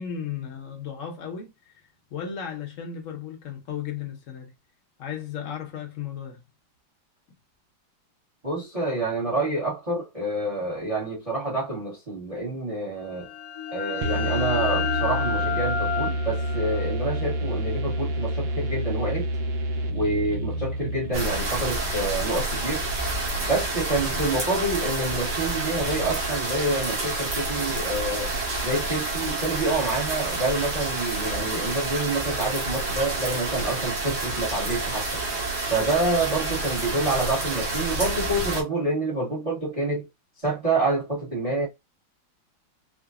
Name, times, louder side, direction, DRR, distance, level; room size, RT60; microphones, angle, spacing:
voice 1, 0.0-4.5 5.0-6.4, left 8 dB, 50° left, 1.1 m, -35 dB
voice 2, 8.4-13.3 13.7-19.3 19.9-22.9 23.4-28.3 28.6-35.2 35.7-40.1 40.4-41.7, right 2 dB, 25° right, 0.9 m, -27 dB
sound 1, 13.1-18.6, left 7 dB, 70° left, 1.1 m, -31 dB
sound 2, 14.0-21.7, equal, 75° right, 1.4 m, -28 dB
sound 3, 21.1-38.6, right 2 dB, 60° right, 1.9 m, -29 dB
4.9 x 2.1 x 2.4 m
omnidirectional pair, 2.1 m